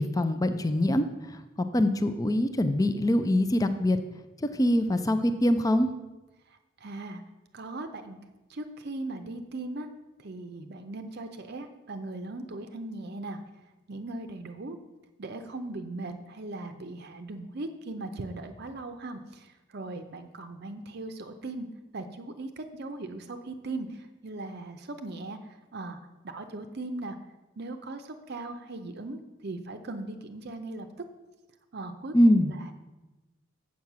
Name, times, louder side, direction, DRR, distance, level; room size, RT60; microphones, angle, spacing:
voice 1, 0.0-4.0 4.4-5.9 32.1-32.5, left 1 dB, 15° left, 9 dB, 0.4 m, -24 dB
voice 2, 6.5-7.2 7.5-8.2 8.5-9.9 10.2-13.4 13.9-14.8 15.2-21.7 21.9-26.0 26.2-27.2 27.6-30.9 31.7-32.2 32.5-32.7, right 2 dB, 50° right, 7 dB, 0.6 m, -39 dB
7.4 x 7.1 x 6.0 m, 1.1 s
head